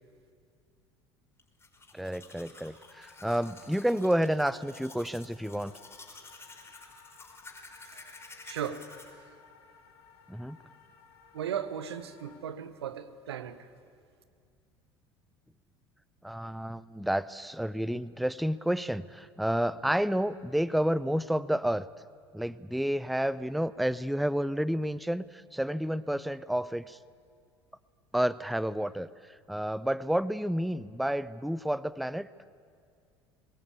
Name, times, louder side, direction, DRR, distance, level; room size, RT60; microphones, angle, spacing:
Domestic sounds home sounds, 1.4-9.1, left 3 dB, 20° left, 4.7 m, -51 dB
voice 1, 1.9-5.7 10.3-10.6 16.2-21.9 22.3-27.0 28.1-32.3, equal, ahead, 18 dB, 0.5 m, -30 dB
sound 1, 2.9-12.4, left 7 dB, 70° left, 2.3 m, -58 dB
voice 2, 8.5-8.9 11.3-13.7, right 9 dB, 80° right, 13 dB, 1.0 m, -36 dB
22.0 x 19.5 x 8.6 m, 2.2 s
figure-of-eight pair, 70°, 14 cm